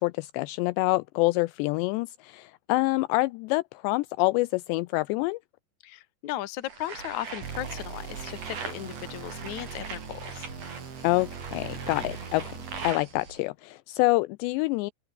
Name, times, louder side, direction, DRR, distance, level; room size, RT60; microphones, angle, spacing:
voice 1, 0.0-5.4 11.0-12.6 12.8-14.9, left 21 dB, 90° left, 2.4 m, -26 dB
voice 2, 5.8-10.5, left 14 dB, 65° left, 2.0 m, -36 dB
sound 1, 6.7-13.4, right 5 dB, 40° right, 6.2 m, -41 dB
sound 2, 7.4-13.2, right 6 dB, 70° right, 7.9 m, -40 dB
open air
omnidirectional pair, 5.6 m